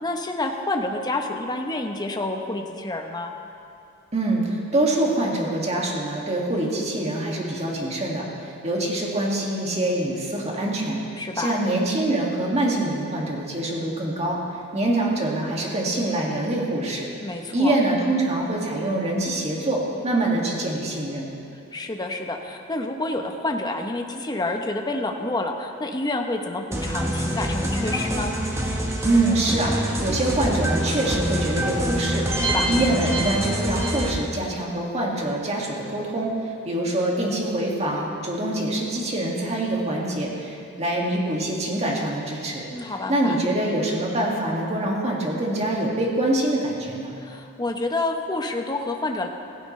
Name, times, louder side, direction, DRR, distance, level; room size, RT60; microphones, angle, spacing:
voice 1, 0.0-3.3 11.2-11.6 17.2-17.8 21.7-28.3 32.4-32.7 42.7-43.3 47.2-49.3, left 2 dB, 20° left, 3 dB, 0.9 m, -28 dB
voice 2, 4.1-11.0 11.4-14.4 14.7-17.1 17.5-21.3 29.0-32.3 32.7-36.3 36.7-47.1, right 1 dB, 30° right, -2 dB, 2.2 m, -25 dB
sound 1, 26.7-34.1, right 1 dB, 15° right, 1.2 m, -25 dB
16.0 x 16.0 x 3.3 m, 2.6 s
head